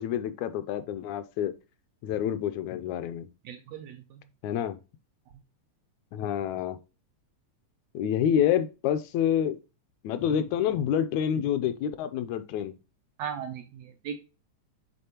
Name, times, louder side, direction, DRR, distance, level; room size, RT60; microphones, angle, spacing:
voice 1, 0.0-1.5 2.0-3.3 4.4-4.8 6.1-6.8 7.9-9.6 10.0-12.8, left 9 dB, 80° left, 1.8 m, -28 dB
voice 2, 3.4-4.0 13.2-14.2, right 8 dB, 80° right, 1.5 m, -37 dB
8.6 x 3.9 x 2.8 m
omnidirectional pair, 3.5 m